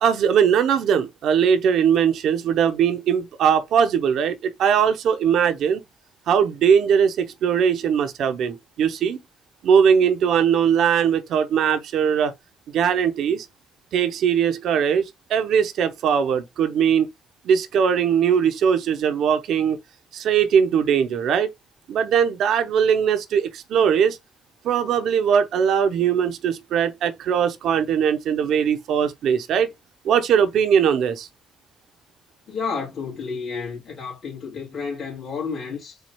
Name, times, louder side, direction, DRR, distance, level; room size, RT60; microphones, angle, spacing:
voice 1, 0.0-5.8 6.3-9.2 9.6-12.3 12.7-13.5 13.9-17.1 17.4-19.8 20.1-21.5 21.9-24.2 24.6-29.7 30.0-31.3, right 7 dB, 75° right, 0.7 m, -20 dB
voice 2, 32.5-36.0, left 5 dB, 50° left, 2.2 m, -31 dB
4.5 x 2.3 x 4.5 m
cardioid pair, 90°, 0 cm